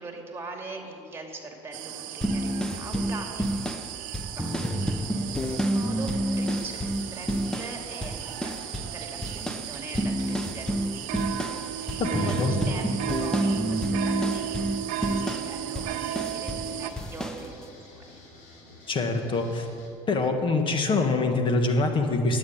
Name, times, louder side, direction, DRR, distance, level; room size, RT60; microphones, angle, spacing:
voice 1, 0.0-18.2, right 3 dB, 20° right, 2 dB, 2.4 m, -42 dB
sound 1, 1.7-16.9, right 11 dB, 70° right, 0.8 m, -35 dB
sound 2, 2.2-7.8 8.0-9.0 9.2-16.7 17.0-17.4, equal, 5° left, 0.9 m, -29 dB
sound 3, 4.3-19.9, left 2 dB, 65° left, 3.5 m, -50 dB
voice 2, 12.0-12.6 18.9-19.7 20.1-22.4, left 3 dB, 35° left, 5 dB, 1.6 m, -25 dB
9.5 x 9.0 x 8.8 m, 2.4 s
supercardioid pair, 105°, 14 cm